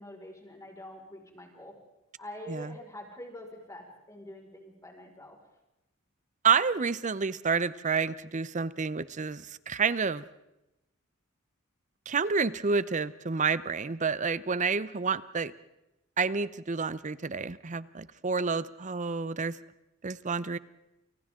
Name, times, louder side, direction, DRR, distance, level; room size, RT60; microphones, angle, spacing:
voice 1, 0.0-1.7 2.2-5.4, left 1 dB, 15° left, 1 dB, 5.2 m, -45 dB
voice 2, 6.4-10.3 12.1-15.5 16.2-19.6 20.0-20.6, right 5 dB, 35° right, 16 dB, 0.7 m, -29 dB
29.5 x 29.0 x 3.8 m, 0.93 s
head